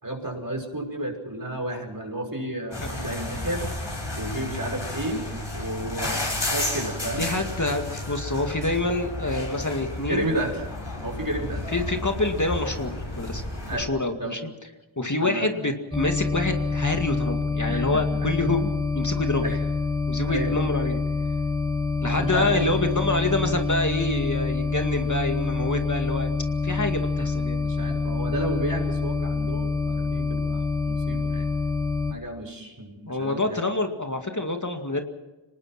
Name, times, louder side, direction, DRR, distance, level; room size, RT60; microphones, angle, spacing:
voice 1, 0.0-3.7 4.1-5.3 5.5-7.3 10.1-10.5 11.0-11.7 13.7-13.8 14.2-14.4 15.2-15.5 17.7-18.3 19.4-19.6 20.3-20.6 22.0-22.7 27.2-27.3 27.6-31.5 32.1-33.6, right 1 dB, 45° right, 3 dB, 5.8 m, -32 dB
sound 1, 2.7-13.8, left 1 dB, 60° left, 7.9 m, -32 dB
voice 2, 7.2-10.3 11.7-13.4 13.7-14.4 15.0-18.7 18.9-19.4 20.1-21.0 22.0-26.3 26.6-27.7 33.1-35.0, left 2 dB, 40° left, 4 dB, 2.2 m, -27 dB
sound 2, 15.9-32.1, left 4 dB, 5° left, 1.5 m, -26 dB
25.0 x 19.5 x 6.0 m, 1.1 s
wide cardioid pair, 40°, 47 cm